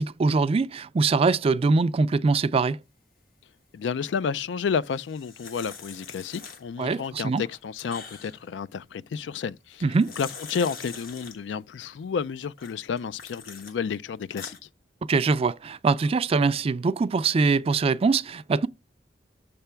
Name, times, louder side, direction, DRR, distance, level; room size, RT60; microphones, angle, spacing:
voice 1, 0.0-2.8 6.8-7.4 9.8-10.1 15.1-18.7, right 4 dB, 30° right, 0.3 m, -23 dB
voice 2, 3.7-9.8 10.2-14.6, left 6 dB, 75° left, 0.4 m, -31 dB
sound 1, 4.8-6.9 7.3-8.5 9.7-11.4 12.6-13.7 14.1-14.6, left 5 dB, 55° left, 1.2 m, -43 dB
6.7 x 3.4 x 5.6 m
head